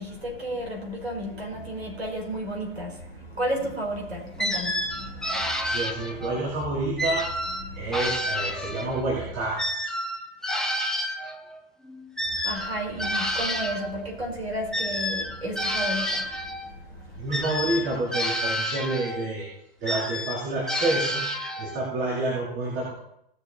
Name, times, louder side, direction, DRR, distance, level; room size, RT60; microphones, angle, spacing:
voice 1, 0.0-6.4 7.6-8.0 8.6-8.7 12.2-17.3, right 1 dB, 80° right, -1 dB, 4.7 m, -33 dB
sound 1, 4.4-6.4 7.0-9.1 9.6-13.9 14.7-16.7 17.3-19.3 19.8-21.8, left 1 dB, ahead, 0.9 m, -29 dB
voice 2, 5.6-7.3 7.7-9.9 17.2-19.5 19.8-21.3 21.6-22.9, right 2 dB, 35° right, -5 dB, 3.9 m, -28 dB
18.5 x 6.8 x 4.3 m, 0.77 s
figure-of-eight pair, 95°, 31 cm